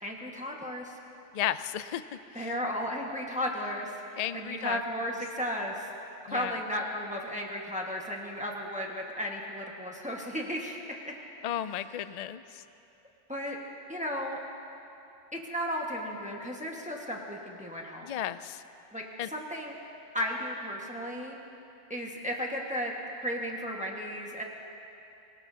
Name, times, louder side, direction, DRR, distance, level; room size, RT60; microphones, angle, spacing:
voice 1, 0.0-1.0 2.3-3.9 4.3-5.9 6.2-10.8 11.0-11.1 13.3-13.6 13.9-14.4 15.3-18.1 18.9-19.0 19.3-19.7 20.1-21.4 21.9-22.9 23.2-24.4, equal, 5° right, -2 dB, 1.5 m, -34 dB
voice 2, 1.3-2.5 4.2-4.8 6.3-6.6 11.4-12.6 18.0-18.6 19.2-19.3, left 11 dB, 75° left, 13 dB, 0.3 m, -34 dB
23.5 x 19.0 x 2.8 m, 2.8 s
omnidirectional pair, 1.2 m